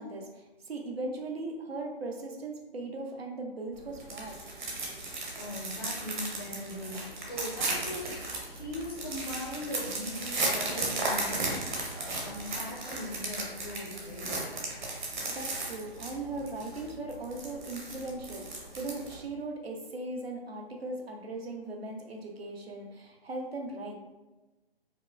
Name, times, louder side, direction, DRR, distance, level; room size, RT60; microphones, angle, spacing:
voice 1, 0.0-4.5 15.3-23.9, right 2 dB, 75° right, 2 dB, 0.8 m, -38 dB
sound 1, 3.7-19.3, right 2 dB, 50° right, 0.9 m, -36 dB
voice 2, 5.3-14.4, left 1 dB, 25° left, -4 dB, 0.6 m, -40 dB
4.7 x 2.2 x 2.4 m, 1.1 s
figure-of-eight pair, 145°, 30 cm